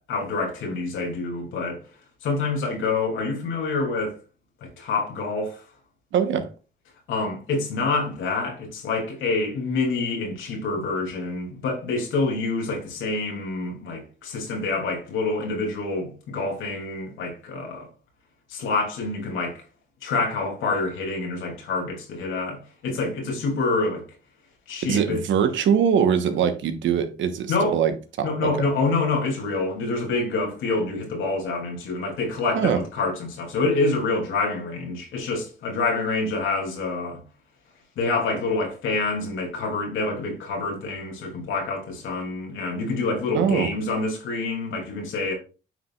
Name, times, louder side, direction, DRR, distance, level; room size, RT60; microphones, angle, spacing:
voice 1, 0.1-1.9 2.2-4.2 4.6-5.6 7.1-17.9 18.5-19.6 20.0-24.0 24.7-25.2 27.5-27.8 28.2-37.2 38.0-45.3, left 3 dB, 85° left, 2.9 m, -27 dB
voice 2, 6.1-6.5 24.8-27.9 28.2-28.3 28.6-28.7 32.5-32.8 43.3-43.7, right 8 dB, 75° right, 1.2 m, -22 dB
9.1 x 5.3 x 2.4 m
cardioid pair, 90°, 20 cm